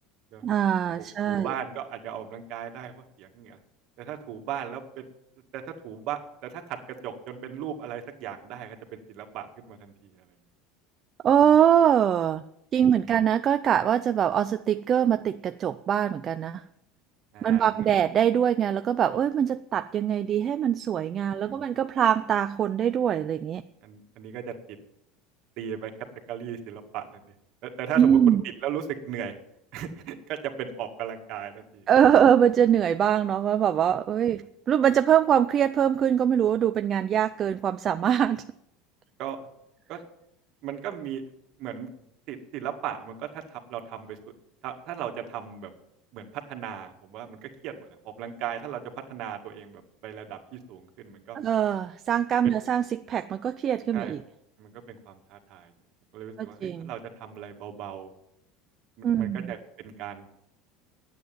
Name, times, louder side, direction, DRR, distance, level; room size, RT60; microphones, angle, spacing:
voice 1, 0.4-1.5 11.2-12.4 12.7-16.6 17.4-23.6 28.0-28.4 31.9-38.4 51.3-54.2 56.4-56.9 59.0-59.5, right 9 dB, 35° right, 10 dB, 0.4 m, -23 dB
voice 2, 1.0-3.6 4.0-5.0 5.5-10.3 17.3-17.9 21.3-21.6 23.8-24.5 25.6-25.9 26.3-27.3 27.6-29.3 29.7-31.9 39.2-39.4 39.9-40.0 40.6-41.2 41.6-41.9 42.3-44.2 44.6-45.7 46.1-51.4 53.9-54.2 54.6-55.7 56.1-58.1 59.0-60.5, right 9 dB, 55° right, 3 dB, 1.9 m, -37 dB
9.5 x 8.3 x 9.3 m, 0.79 s
supercardioid pair, 115°, 0 cm